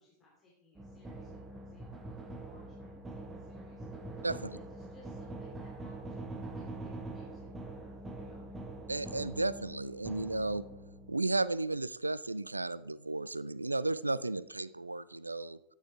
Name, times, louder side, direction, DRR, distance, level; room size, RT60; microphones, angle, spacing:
voice 1, 0.0-8.6, left 2 dB, 20° left, -5 dB, 3.0 m, -63 dB
sound 1, 0.7-11.7, right 2 dB, 15° right, 1.4 m, -44 dB
voice 2, 8.9-10.6 11.1-15.6, right 2 dB, 80° right, 18 dB, 0.3 m, -34 dB
12.5 x 9.5 x 3.5 m, 0.89 s
figure-of-eight pair, 90°, 0 cm